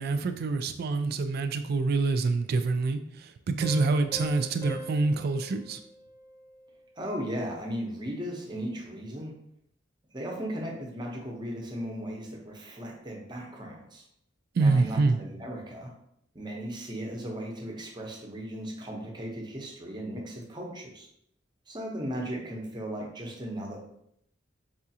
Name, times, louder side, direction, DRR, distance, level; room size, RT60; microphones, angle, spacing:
voice 1, 0.0-3.0 3.5-5.8 14.6-15.2, right 3 dB, 50° right, 9 dB, 0.3 m, -26 dB
Piano, 3.6-6.9, equal, 15° left, 0.5 m, -43 dB
voice 2, 7.0-9.3 10.1-14.0 14.6-15.9 16.3-21.1 21.7-23.9, equal, 25° right, -1 dB, 0.7 m, -36 dB
4.8 x 2.4 x 2.7 m, 0.73 s
head